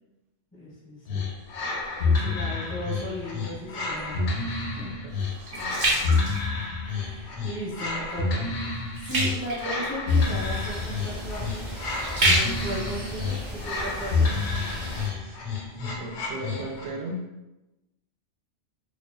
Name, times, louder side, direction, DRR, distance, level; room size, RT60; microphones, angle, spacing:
voice 1, 0.5-1.2 2.0-4.9 6.8-11.6 12.2-14.4, equal, 20° left, -6 dB, 0.4 m, -36 dB
sound 1, 1.1-17.0, left 4 dB, 90° left, 0.9 m, -29 dB
voice 2, 2.1-2.7 4.8-6.4 15.1-15.4 15.9-17.2, right 1 dB, 90° right, -1 dB, 0.9 m, -39 dB
sound 2, 4.0-7.2 7.6-7.9 8.3-14.2 14.7-14.8, right 1 dB, 55° right, 0.8 m, -30 dB
sound 3, 10.1-15.1, equal, 35° right, 0.5 m, -37 dB
2.4 x 2.2 x 2.3 m, 0.97 s
omnidirectional pair, 1.2 m